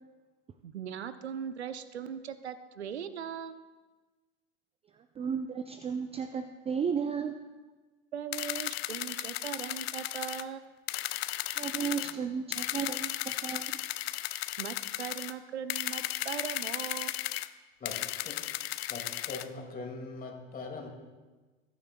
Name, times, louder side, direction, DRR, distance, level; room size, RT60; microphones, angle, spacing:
voice 1, 0.6-3.7 8.1-10.6 14.6-17.1, right 8 dB, 90° right, 12 dB, 0.6 m, -39 dB
voice 2, 5.2-7.3 11.6-13.8, right 6 dB, 20° right, 8 dB, 0.4 m, -34 dB
sound 1, 8.3-10.4 10.9-12.1 12.5-15.3 15.7-17.5 17.9-19.5, left 15 dB, 70° left, 0.5 m, -35 dB
voice 3, 18.9-20.9, left 3 dB, 25° left, 3 dB, 2.2 m, -41 dB
20.5 x 9.1 x 2.2 m, 1.3 s
hypercardioid pair, 85°, 32 cm